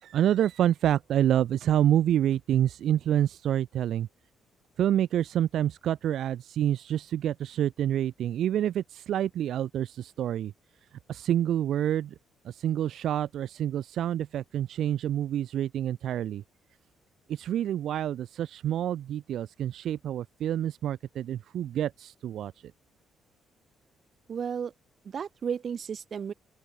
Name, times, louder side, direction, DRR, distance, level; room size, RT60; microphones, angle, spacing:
voice 1, 0.0-4.1 4.8-10.5 11.1-12.1 12.4-16.4 17.3-22.5, right 11 dB, 70° right, 2.4 m, -27 dB
voice 2, 24.3-24.7 25.0-26.3, right 7 dB, 50° right, 3.3 m, -33 dB
open air
cardioid pair, 90°, 0 cm